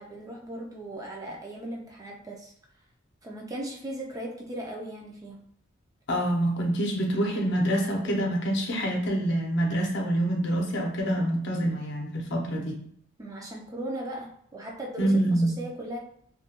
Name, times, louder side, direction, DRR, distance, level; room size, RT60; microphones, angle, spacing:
voice 1, 0.0-2.5 3.2-5.4 13.2-16.0, right 1 dB, 15° right, -1 dB, 0.3 m, -38 dB
voice 2, 6.1-12.8 15.0-15.6, right 1 dB, 60° left, 0 dB, 0.6 m, -26 dB
2.3 x 2.2 x 2.8 m, 0.66 s
head